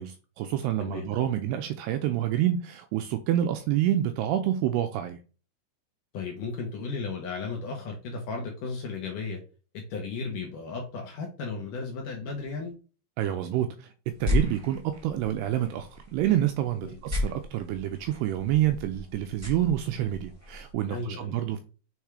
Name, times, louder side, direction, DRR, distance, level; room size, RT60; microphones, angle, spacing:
voice 1, 0.0-5.2 13.2-21.6, right 12 dB, 85° right, 2.4 m, -28 dB
voice 2, 0.8-1.1 6.1-9.4 9.9-12.7 16.8-17.0 20.9-21.4, left 4 dB, 70° left, 2.1 m, -35 dB
sound 1, 14.0-20.7, left 2 dB, 10° right, 0.7 m, -34 dB
6.9 x 3.6 x 4.8 m
omnidirectional pair, 5.2 m